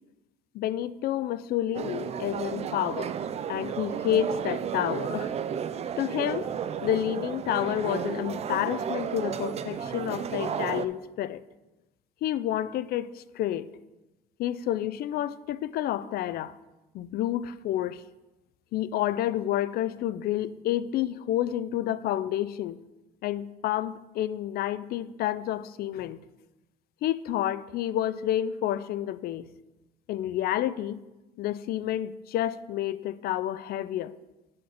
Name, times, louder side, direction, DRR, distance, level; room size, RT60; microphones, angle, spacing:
voice 1, 0.5-3.1 3.5-5.3 6.0-6.5 6.8-11.4 12.2-13.7 14.4-16.6 16.9-18.0 18.7-22.8 23.2-26.2 27.0-29.5 30.1-31.0 31.4-34.1, left 12 dB, 65° left, 0.4 m, -29 dB
sound 1, 1.7-10.9, right 8 dB, 40° right, 0.4 m, -33 dB
9.2 x 4.3 x 6.5 m
cardioid pair, 110°, 17 cm